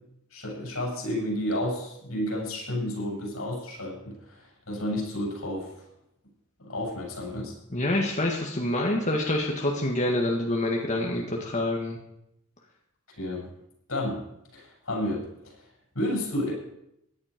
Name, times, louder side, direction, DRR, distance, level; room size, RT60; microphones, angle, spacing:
voice 1, 0.3-5.7 6.6-7.5 13.2-13.5 13.9-14.2 14.5-15.3 15.9-16.5, left 1 dB, 85° left, -2 dB, 7.8 m, -31 dB
voice 2, 7.7-12.0, left 1 dB, 35° left, 0 dB, 1.8 m, -26 dB
17.0 x 11.0 x 5.2 m, 0.79 s
head